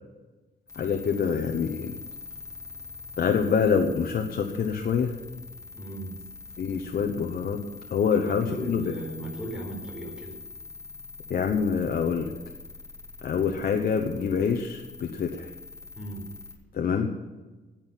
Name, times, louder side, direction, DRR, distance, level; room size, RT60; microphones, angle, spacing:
sound 1, 0.7-16.6, left 4 dB, 15° left, 2.2 m, -44 dB
voice 1, 0.8-1.9 3.2-5.1 6.6-7.6 7.9-8.8 11.3-12.3 13.2-15.5 16.7-17.1, left 6 dB, 55° left, 4 dB, 1.0 m, -26 dB
voice 2, 5.7-6.2 8.1-10.4 16.0-16.2, right 1 dB, 5° right, 0 dB, 4.2 m, -36 dB
10.0 x 9.1 x 9.1 m, 1.2 s
cardioid pair, 130°, 19 cm